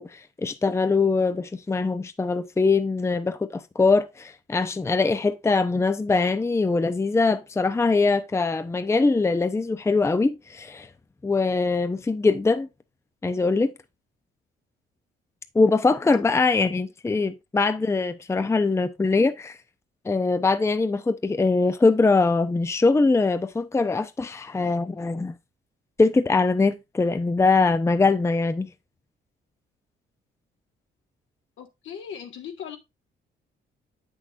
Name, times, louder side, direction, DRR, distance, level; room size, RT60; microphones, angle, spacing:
voice 1, 0.0-10.9 11.2-12.7 13.2-13.7 15.5-19.6 20.0-25.3 26.0-28.7, left 3 dB, 15° left, 0.6 m, -22 dB
voice 2, 31.6-32.8, left 8 dB, 75° left, 1.7 m, -39 dB
8.0 x 6.2 x 2.5 m
cardioid pair, 90°, 20 cm